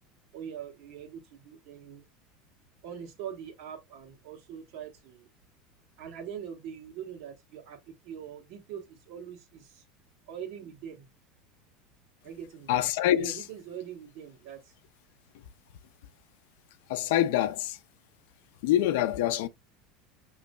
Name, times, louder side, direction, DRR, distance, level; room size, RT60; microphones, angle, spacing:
voice 1, 0.3-2.0 2.8-5.3 6.0-7.8 8.0-9.8 10.3-11.0 12.2-12.7 13.2-14.6, right 8 dB, 50° right, 1.5 m, -42 dB
voice 2, 12.7-13.4 16.9-17.8 18.6-19.5, left 12 dB, 80° left, 0.5 m, -25 dB
6.3 x 3.0 x 2.4 m
cardioid pair, 170°, 0 cm